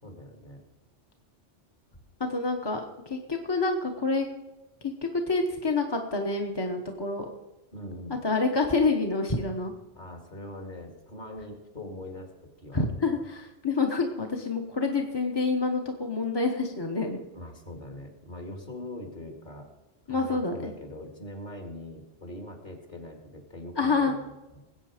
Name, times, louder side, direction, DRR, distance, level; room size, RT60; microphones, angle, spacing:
voice 1, 0.0-0.6 7.7-8.2 9.9-12.9 17.3-19.7 20.1-24.6, left 1 dB, 45° left, 3 dB, 2.5 m, -42 dB
voice 2, 2.3-4.3 5.0-7.3 8.2-9.7 12.7-17.2 20.1-20.7 23.8-24.1, left 3 dB, 25° left, 2 dB, 1.1 m, -27 dB
20.0 x 8.3 x 5.0 m, 1.0 s
omnidirectional pair, 1.2 m